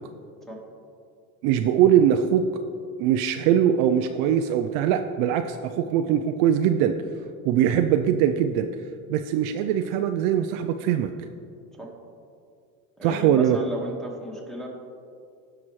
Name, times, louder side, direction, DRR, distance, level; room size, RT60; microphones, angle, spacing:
voice 1, 1.4-2.4 3.0-7.0 7.4-8.7 9.1-11.1 13.0-13.6, right 9 dB, 50° right, 7 dB, 0.5 m, -21 dB
voice 2, 13.0-14.7, right 1 dB, ahead, -1 dB, 1.5 m, -35 dB
16.0 x 5.9 x 3.1 m, 2.4 s
supercardioid pair, 125°, 40 cm